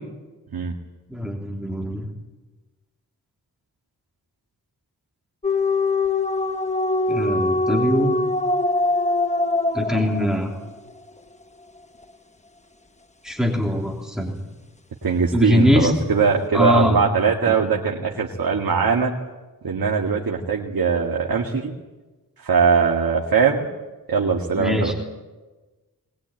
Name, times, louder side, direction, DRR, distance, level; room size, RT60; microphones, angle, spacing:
voice 1, 1.1-2.1 7.1-8.1 9.7-10.5 13.2-14.3 15.3-15.9 16.5-17.0 17.5-17.6 24.5-24.9, left 1 dB, ahead, 0 dB, 3.2 m, -22 dB
sound 1, 5.4-10.7, left 2 dB, 20° left, 1.1 m, -22 dB
voice 2, 15.0-19.1 19.6-21.7 22.4-23.7 24.1-24.9, right 5 dB, 80° right, -1 dB, 2.1 m, -21 dB
21.5 x 20.5 x 9.2 m, 1.2 s
wide cardioid pair, 130°, 35 cm